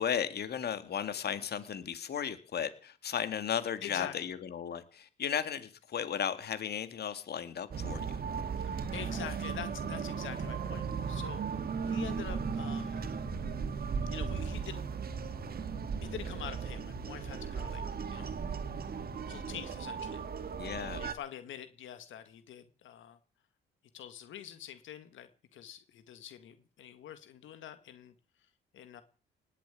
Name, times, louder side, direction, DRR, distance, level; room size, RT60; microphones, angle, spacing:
voice 1, 0.0-8.2 20.6-21.0, left 8 dB, 55° left, 10 dB, 2.1 m, -35 dB
voice 2, 3.8-4.3 8.6-13.1 14.1-14.8 16.0-17.8 18.1-18.4 19.3-20.2 20.8-23.2 23.9-28.1 28.7-29.0, left 10 dB, 75° left, 10 dB, 1.9 m, -46 dB
sound 1, 7.7-21.1, right 5 dB, 50° right, 2.3 m, -36 dB
19.0 x 7.5 x 9.2 m, 0.39 s
cardioid pair, 90°, 20 cm